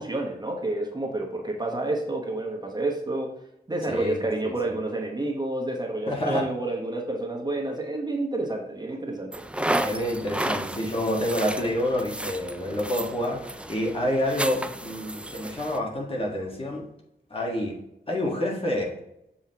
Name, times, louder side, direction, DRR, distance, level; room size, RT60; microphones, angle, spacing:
voice 1, 0.0-3.3 3.7-9.3, right 2 dB, 25° right, 0 dB, 1.1 m, -29 dB
voice 2, 3.9-4.7 6.1-6.5 9.8-16.8 17.3-17.8 18.1-19.0, left 1 dB, 35° left, -2 dB, 1.5 m, -28 dB
sound 1, 9.3-15.8, right 1 dB, 5° right, 0.3 m, -32 dB
7.0 x 5.5 x 2.9 m, 0.83 s
wide cardioid pair, 110°, 17 cm